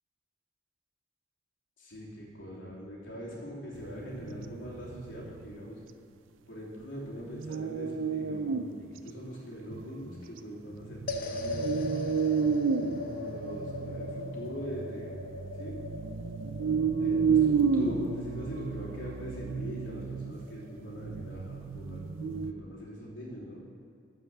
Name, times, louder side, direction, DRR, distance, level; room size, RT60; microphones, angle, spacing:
voice 1, 1.8-5.8 6.5-11.8 13.0-15.1 15.6-15.8 16.9-23.6, equal, 80° left, -4 dB, 3.0 m, -42 dB
sound 1, 3.8-5.6 7.3-8.8 9.1-9.2 9.7-10.2 10.7-22.5, right 6 dB, 85° right, 0.5 m, -31 dB
sound 2, 11.1-21.5, left 2 dB, 50° left, 0.8 m, -41 dB
12.5 x 5.6 x 7.3 m, 2.4 s
head